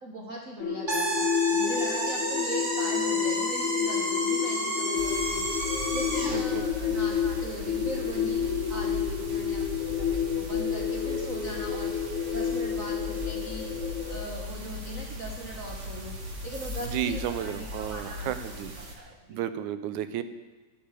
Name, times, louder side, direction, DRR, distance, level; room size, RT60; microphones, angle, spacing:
voice 1, 0.0-8.4 8.7-11.9 12.3-13.7 14.1-16.2 16.4-19.4, right 1 dB, 60° right, 0 dB, 0.8 m, -40 dB
sound 1, 0.6-14.3, left 8 dB, 75° left, 2.5 m, -30 dB
sound 2, 0.9-6.4, right 1 dB, 15° right, 2.9 m, -31 dB
sound 3, 4.9-18.9, left 1 dB, 40° right, 1.1 m, -38 dB
voice 2, 6.3-7.0 16.8-18.7 19.3-20.2, right 10 dB, 85° right, 11 dB, 2.1 m, -33 dB
10.0 x 9.6 x 8.1 m, 1.2 s
omnidirectional pair, 3.4 m